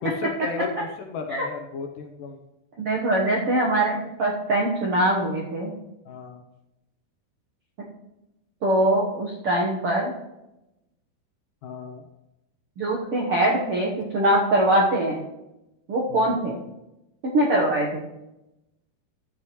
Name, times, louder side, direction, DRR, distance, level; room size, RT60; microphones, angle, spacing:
voice 1, 0.0-2.4 6.1-6.4 11.6-12.0, left 5 dB, 75° left, 4 dB, 2.1 m, -34 dB
voice 2, 2.8-5.7 8.6-10.1 12.8-15.2 15.9-16.6 17.2-18.0, right 1 dB, 65° right, -3 dB, 1.4 m, -22 dB
13.0 x 9.4 x 3.1 m, 0.93 s
omnidirectional pair, 4.3 m